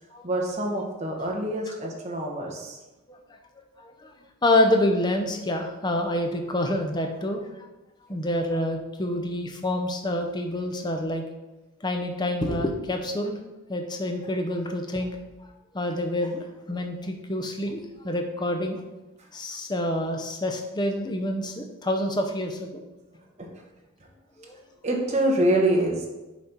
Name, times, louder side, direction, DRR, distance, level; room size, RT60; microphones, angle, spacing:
voice 1, 0.2-2.8 23.4-23.5 24.8-26.1, right 1 dB, 30° right, 0 dB, 1.1 m, -25 dB
voice 2, 3.8-4.1 4.4-7.4 8.1-11.2 11.8-13.4 13.7-15.1 15.7-18.8 19.3-22.7 24.4-24.6, left 1 dB, 20° left, 4 dB, 0.6 m, -27 dB
7.2 x 4.1 x 4.5 m, 1.1 s
head